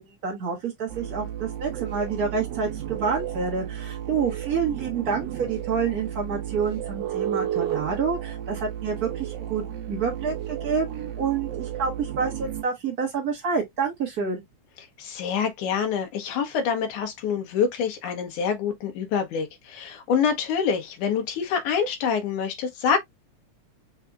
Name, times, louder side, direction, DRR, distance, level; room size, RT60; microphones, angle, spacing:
voice 1, 0.0-9.6 9.9-14.4, right 5 dB, 45° right, 1.3 m, -28 dB
sound 1, 0.9-12.6, right 11 dB, 70° right, 1.8 m, -33 dB
voice 2, 15.0-23.0, left 6 dB, 85° left, 2.6 m, -26 dB
5.7 x 3.8 x 2.3 m
omnidirectional pair, 3.5 m